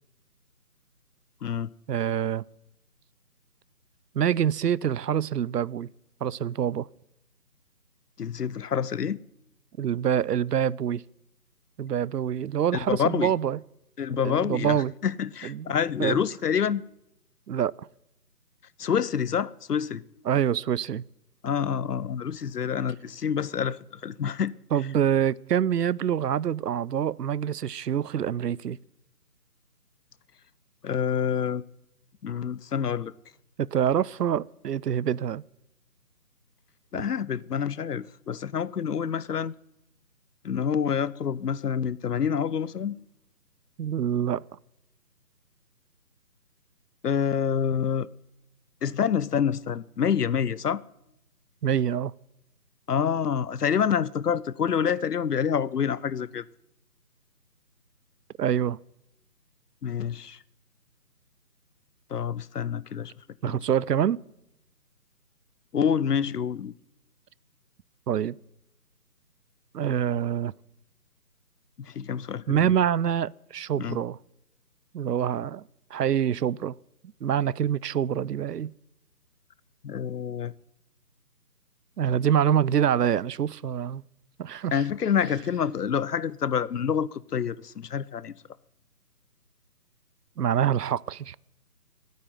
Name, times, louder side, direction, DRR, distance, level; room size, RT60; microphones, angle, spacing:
voice 1, 1.9-2.4 4.1-5.9 6.2-6.9 9.8-11.0 11.8-13.6 14.2-14.9 15.4-15.7 16.0-16.2 17.5-17.9 20.3-21.0 24.7-28.8 33.6-35.4 43.8-44.4 51.6-52.1 58.4-58.8 63.4-64.2 68.1-68.4 69.7-70.5 72.5-74.2 74.9-75.6 75.9-76.7 77.2-78.7 82.0-84.0 84.4-84.8 90.4-91.4, right 9 dB, 75° right, 0.6 m, -26 dB
voice 2, 8.2-9.2 12.7-13.3 14.0-16.8 18.8-20.0 21.4-24.5 30.8-31.6 32.2-33.1 36.9-39.5 40.4-43.0 47.0-48.1 48.8-50.8 52.9-56.5 59.8-60.4 62.1-63.6 65.7-66.7 70.1-70.2 71.8-72.8 73.8-74.0 79.8-80.5 84.7-88.3, left 7 dB, 70° left, 0.7 m, -27 dB
13.0 x 9.4 x 9.5 m
figure-of-eight pair, 175°, 49 cm